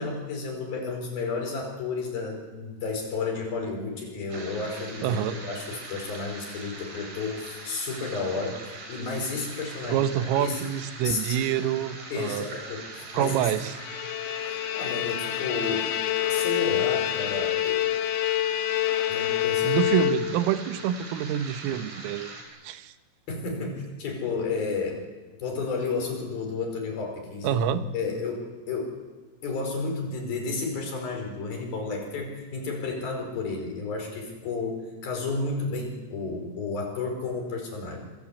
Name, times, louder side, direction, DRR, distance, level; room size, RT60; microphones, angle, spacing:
voice 1, 0.0-8.6 8.9-10.1 10.4-10.6 11.0-11.6 12.1-13.4 14.7-15.9 16.3-17.8 19.1-19.8 23.3-25.0 25.4-27.6 27.9-28.4 28.7-28.9 29.4-38.0, left 4 dB, 45° left, 2 dB, 6.7 m, -32 dB
sound 1, 4.3-22.4, right 3 dB, 55° right, 6.4 m, -42 dB
voice 2, 5.0-5.4 9.9-12.5 13.1-13.8 19.6-22.3 22.6-22.9 27.4-27.8, right 10 dB, 85° right, 11 dB, 3.8 m, -26 dB
Bowed string instrument, 13.6-20.6, left 13 dB, 80° left, 2.2 m, -27 dB
27.0 x 19.5 x 8.5 m, 1.3 s
omnidirectional pair, 5.8 m